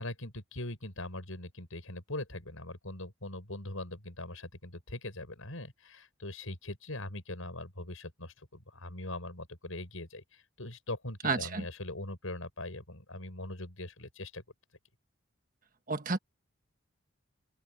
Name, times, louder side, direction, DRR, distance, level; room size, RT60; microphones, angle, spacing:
voice 1, 0.0-14.4, left 2 dB, 85° left, 6.4 m, -41 dB
voice 2, 11.2-11.6 15.9-16.2, right 4 dB, 40° right, 1.4 m, -30 dB
open air
head